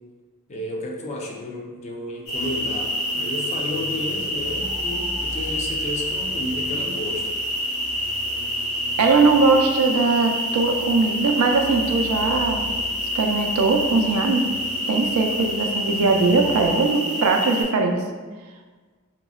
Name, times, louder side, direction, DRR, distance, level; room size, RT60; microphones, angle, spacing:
voice 1, 0.5-7.4, left 1 dB, 30° left, 0 dB, 0.4 m, -32 dB
sound 1, 2.3-16.7, equal, 85° left, 1.4 m, -43 dB
sound 2, 2.3-17.6, equal, 65° left, 1.1 m, -27 dB
voice 2, 9.0-12.6 13.1-14.5 14.9-18.0, right 3 dB, 80° right, 3 dB, 0.4 m, -20 dB
3.7 x 2.0 x 2.3 m, 1.4 s
head